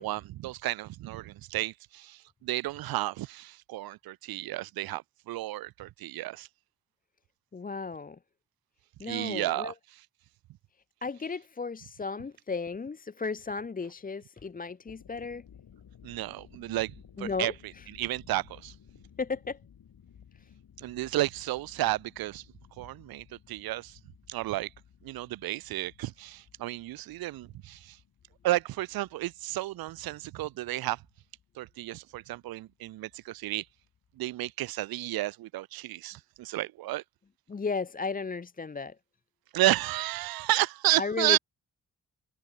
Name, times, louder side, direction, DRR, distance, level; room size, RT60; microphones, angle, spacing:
voice 1, 0.0-6.5 9.0-9.7 16.0-17.5 17.9-18.7 20.8-22.4 22.8-24.0 24.3-24.7 25.0-28.0 28.4-31.0 31.6-33.7 34.2-37.0 39.5-41.4, right 16 dB, 70° right, 0.5 m, -32 dB
voice 2, 7.5-8.2 9.0-9.7 11.0-15.4 17.2-17.8 19.2-19.6 37.5-39.0 41.0-41.4, left 4 dB, 25° left, 0.6 m, -34 dB
sound 1, 14.8-34.4, left 8 dB, 70° left, 4.0 m, -57 dB
open air
supercardioid pair, 45°, 38 cm